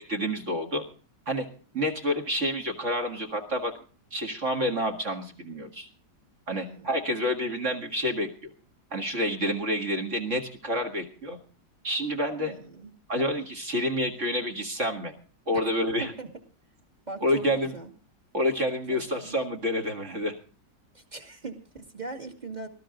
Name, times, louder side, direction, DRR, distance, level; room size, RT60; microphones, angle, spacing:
voice 1, 0.1-0.8 1.3-1.5 1.7-3.7 4.1-5.9 6.5-8.3 8.9-11.4 11.8-12.5 13.1-15.1 15.5-16.1 17.2-17.7 18.3-20.3, equal, 40° right, 3 dB, 2.2 m, -28 dB
voice 2, 6.5-7.0 12.4-12.9 15.5-15.6 16.0-16.3 17.1-17.9 18.9-19.4 20.9-22.7, right 3 dB, 25° right, 3 dB, 2.4 m, -40 dB
20.0 x 13.0 x 3.8 m, 0.39 s
omnidirectional pair, 1.9 m